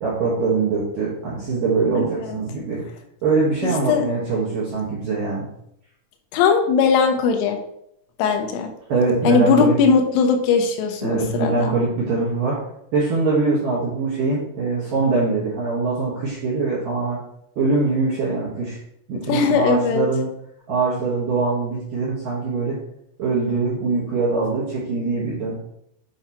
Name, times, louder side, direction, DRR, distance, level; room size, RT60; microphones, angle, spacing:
voice 1, 0.0-2.8 3.2-5.5 8.9-9.8 11.0-12.6 12.9-17.2 17.6-18.8 19.1-20.3 20.7-22.8 23.2-25.5, right 3 dB, 70° right, -7 dB, 2.1 m, -22 dB
voice 2, 3.6-4.1 6.3-7.6 8.2-8.7 9.3-11.7 19.3-20.1, left 5 dB, 85° left, 5 dB, 3.4 m, -19 dB
8.7 x 4.8 x 2.9 m, 0.75 s
omnidirectional pair, 5.9 m